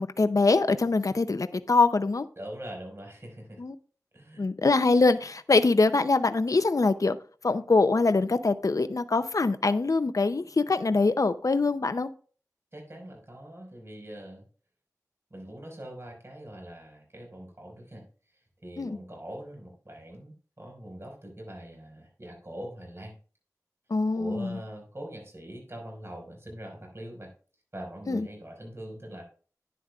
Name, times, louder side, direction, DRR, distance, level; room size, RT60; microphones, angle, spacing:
voice 1, 0.0-2.3 3.6-3.7 4.4-7.2 7.4-12.1 18.8-19.0 23.9-24.6 28.1-28.3, left 3 dB, 60° left, 10 dB, 0.5 m, -24 dB
voice 2, 2.3-3.6 4.1-4.4 12.7-14.4 15.3-18.0 18.6-23.1 24.1-27.3 27.7-29.2, right 1 dB, 40° right, 1 dB, 5.1 m, -42 dB
11.0 x 10.0 x 2.4 m, 0.40 s
wide cardioid pair, 40°, 6 cm